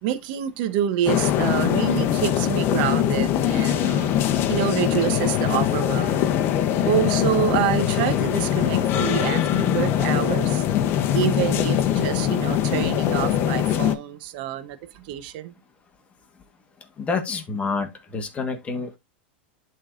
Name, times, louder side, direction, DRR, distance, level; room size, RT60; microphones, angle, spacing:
voice 1, 0.0-4.1 4.5-6.2 6.8-10.6 11.1-15.5, right 11 dB, 55° right, 0.9 m, -27 dB
sound 1, 1.1-14.0, left 10 dB, 40° left, 0.9 m, -22 dB
voice 2, 17.0-19.0, left 4 dB, 20° left, 1.5 m, -28 dB
11.5 x 3.8 x 2.6 m
hypercardioid pair, 120°, 6 cm